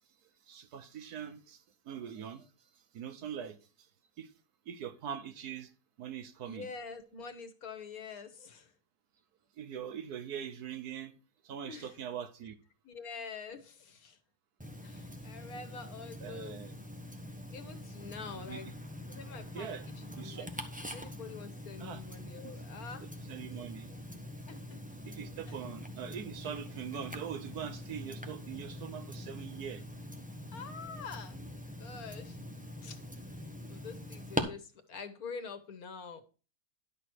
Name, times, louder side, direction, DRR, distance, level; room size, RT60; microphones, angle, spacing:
voice 1, 0.5-2.5 2.9-3.9 4.2-4.3 4.7-5.7 6.0-6.7 9.6-11.1 11.4-12.6 16.2-16.8 18.5-18.6 19.5-19.8 20.2-20.5 21.8-22.0 22.4-22.5 23.3-23.9 25.0-29.8, right 8 dB, 80° right, 1.4 m, -42 dB
voice 2, 6.4-8.7 11.6-12.0 12.8-14.2 14.8-16.6 17.5-18.7 19.1-20.5 20.8-23.1 24.5-24.6 25.5-25.6 30.5-31.4 31.8-32.4 32.8-33.0 33.7-36.2, left 5 dB, 70° left, 1.7 m, -46 dB
Tick-tock, 14.6-34.4, equal, 5° right, 1.0 m, -43 dB
11.0 x 6.3 x 4.5 m
omnidirectional pair, 1.7 m